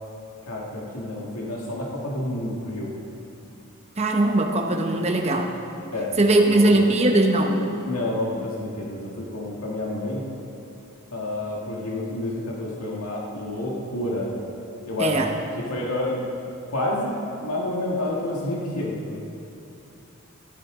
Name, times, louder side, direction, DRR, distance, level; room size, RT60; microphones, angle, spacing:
voice 1, 0.4-2.9 5.9-6.1 6.4-6.9 7.9-10.2 11.1-14.3 14.8-15.2 15.6-16.3 16.7-19.3, left 1 dB, 85° left, -3 dB, 1.8 m, -29 dB
voice 2, 4.0-5.5 6.2-7.6 15.0-15.3, right 2 dB, 30° right, 3 dB, 1.0 m, -20 dB
15.0 x 13.5 x 3.7 m, 2.7 s
head